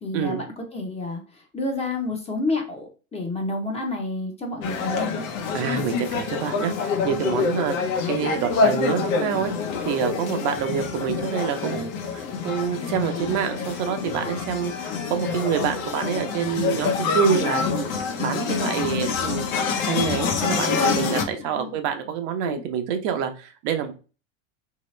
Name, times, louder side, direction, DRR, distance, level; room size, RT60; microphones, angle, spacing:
voice 1, 0.0-5.3 21.4-21.8, left 2 dB, 15° left, 2 dB, 0.6 m, -30 dB
sound 1, 4.6-21.3, left 5 dB, 80° left, 0.9 m, -26 dB
voice 2, 5.5-9.5 9.9-19.5 19.8-23.9, right 8 dB, 60° right, 6 dB, 0.7 m, -27 dB
sound 2, 8.9-22.6, left 8 dB, 60° left, 1.0 m, -39 dB
3.0 x 2.8 x 3.1 m, 0.34 s
supercardioid pair, 130°, 40 cm